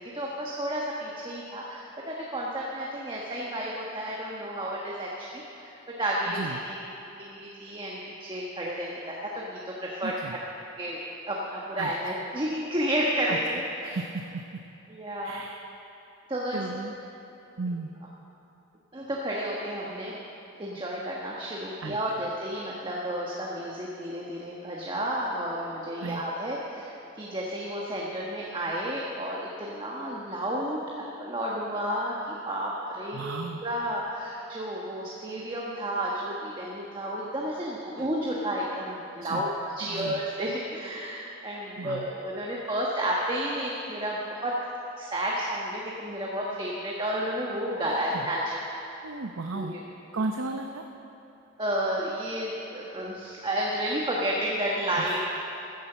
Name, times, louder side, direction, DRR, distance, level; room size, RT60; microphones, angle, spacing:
voice 1, 0.0-5.7 6.0-6.4 6.6-6.8 7.2-10.1 10.8-13.9 14.9-15.4 16.3-16.7 18.9-20.1 20.6-30.8 31.2-44.6 45.0-48.6 49.5-49.8 51.6-55.2, right 1 dB, 25° right, -4 dB, 1.3 m, -31 dB
voice 2, 6.3-6.6 10.0-10.4 11.8-11.9 13.3-13.4 13.8-14.4 15.2-15.6 16.5-16.9 17.6-17.9 21.8-22.0 26.0-26.2 33.1-33.6 38.0-38.1 39.2-39.5 39.8-40.2 41.8-42.1 48.1-48.3 49.0-49.7 50.1-50.8 55.0-55.2, right 3 dB, 80° right, 4 dB, 0.7 m, -34 dB
15.0 x 10.5 x 6.8 m, 2.9 s
head